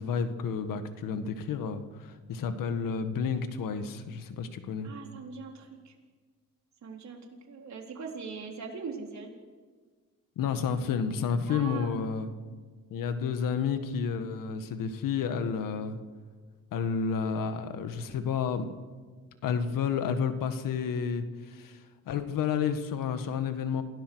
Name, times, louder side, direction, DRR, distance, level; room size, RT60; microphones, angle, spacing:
voice 1, 0.0-4.9 10.4-12.3 12.9-16.0 16.7-18.7 19.4-23.8, left 6 dB, 80° left, 9 dB, 1.8 m, -31 dB
voice 2, 4.8-5.9 6.8-9.3 11.5-11.9, right 5 dB, 60° right, 1 dB, 4.1 m, -41 dB
27.5 x 17.0 x 6.3 m, 1.5 s
cardioid pair, 105°, 32 cm